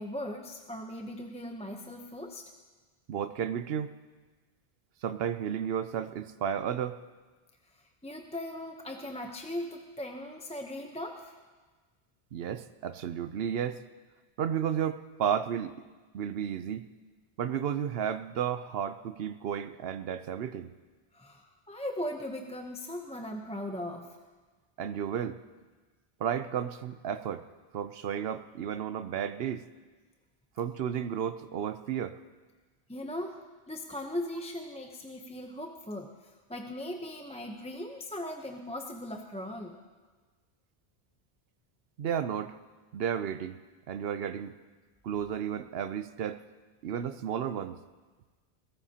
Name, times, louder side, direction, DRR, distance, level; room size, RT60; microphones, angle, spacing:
voice 1, 0.0-2.5 7.7-11.3 21.1-24.2 32.9-39.8, left 1 dB, 5° left, 3 dB, 0.6 m, -39 dB
voice 2, 3.1-3.9 5.0-7.0 12.3-13.8 14.4-15.7 16.1-16.9 17.4-20.7 24.8-25.4 26.2-27.4 27.7-29.7 30.6-32.2 42.0-42.6 42.9-43.6 43.9-44.5 45.0-46.4 46.8-47.8, right 8 dB, 70° right, 12 dB, 0.8 m, -33 dB
21.5 x 16.5 x 2.8 m, 1.4 s
omnidirectional pair, 1.1 m